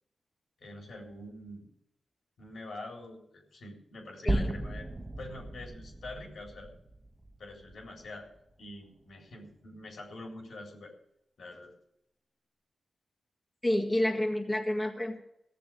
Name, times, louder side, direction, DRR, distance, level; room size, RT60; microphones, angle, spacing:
voice 1, 0.6-1.7 2.4-4.9 5.2-6.7 7.4-8.3 8.6-10.9 11.4-11.7, left 2 dB, 75° left, 1 dB, 3.9 m, -45 dB
voice 2, 4.3-4.6 13.6-15.2, left 1 dB, 15° left, 1 dB, 1.9 m, -29 dB
sound 1, 4.3-8.5, right 1 dB, 20° right, 1.2 m, -36 dB
16.0 x 7.0 x 7.6 m, 0.75 s
cardioid pair, 65°, 0 cm